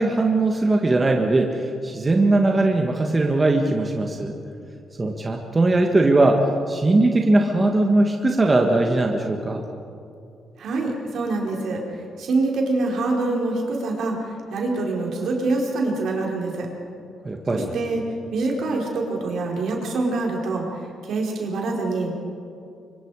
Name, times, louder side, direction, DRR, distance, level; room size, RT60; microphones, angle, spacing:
voice 1, 0.0-4.4 5.0-9.6 17.2-17.7, right 2 dB, 25° right, 2 dB, 1.7 m, -20 dB
voice 2, 10.6-11.8 12.2-14.2 14.5-16.7 17.5-18.0 18.3-22.2, right 3 dB, 70° right, -1 dB, 4.4 m, -25 dB
24.5 x 24.0 x 4.9 m, 2.6 s
cardioid pair, 100°, 0 cm